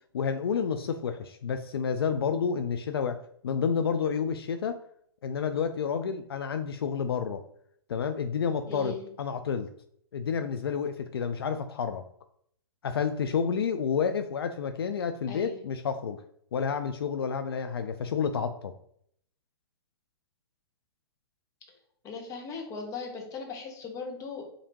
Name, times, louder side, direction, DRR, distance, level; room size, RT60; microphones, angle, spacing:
voice 1, 0.1-4.8 5.2-7.4 7.9-9.7 10.1-12.0 12.8-16.2 16.5-18.7, left 6 dB, 70° left, 8 dB, 0.4 m, -30 dB
voice 2, 8.6-9.1 15.3-15.6 22.0-24.5, left 4 dB, 25° left, 2 dB, 1.0 m, -38 dB
5.1 x 2.7 x 2.9 m, 0.67 s
figure-of-eight pair, 115°, 13 cm